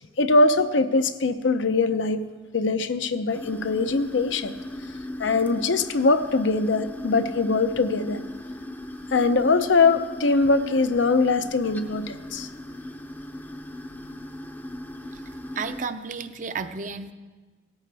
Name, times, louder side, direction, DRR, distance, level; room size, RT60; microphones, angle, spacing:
voice 1, 0.2-2.2 2.5-4.5 5.2-8.2 9.1-12.5, left 3 dB, 80° left, 10 dB, 0.7 m, -22 dB
sound 1, 3.3-15.8, left 1 dB, 10° left, 0.6 m, -38 dB
voice 2, 15.5-17.1, right 5 dB, 45° right, 10 dB, 0.6 m, -32 dB
17.5 x 13.5 x 3.4 m, 1.3 s
head